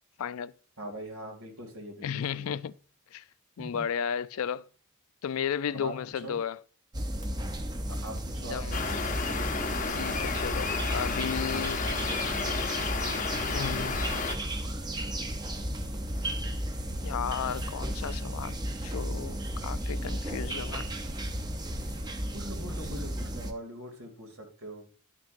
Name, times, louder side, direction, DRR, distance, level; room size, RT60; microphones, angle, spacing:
voice 1, 0.2-0.5 2.0-2.7 3.1-3.2 3.6-4.7 5.2-6.6 8.4-8.8 9.9-11.9 13.5-14.1 17.0-20.9, left 8 dB, 85° left, 0.4 m, -34 dB
voice 2, 0.8-2.6 3.6-3.8 5.7-5.9 6.2-6.4 7.9-8.6 22.3-24.8, right 1 dB, 85° right, 2.4 m, -42 dB
sound 1, 6.9-23.5, right 1 dB, 20° right, 0.6 m, -34 dB
sound 2, 8.7-14.4, left 4 dB, 40° left, 0.7 m, -32 dB
11.5 x 6.0 x 2.6 m
head